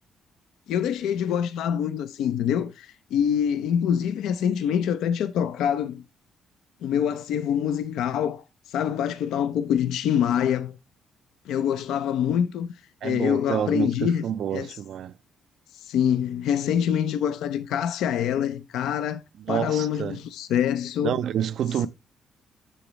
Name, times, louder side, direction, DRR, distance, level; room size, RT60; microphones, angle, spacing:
voice 1, 0.7-6.0 6.8-10.8 11.5-12.7 13.0-14.2 14.5-14.8 15.7-19.2 19.5-21.2, left 9 dB, 85° left, 0.4 m, -25 dB
voice 2, 13.0-15.1 19.4-20.2 21.0-21.9, right 9 dB, 70° right, 0.4 m, -28 dB
6.9 x 6.9 x 3.0 m
cardioid pair, 90°, 0 cm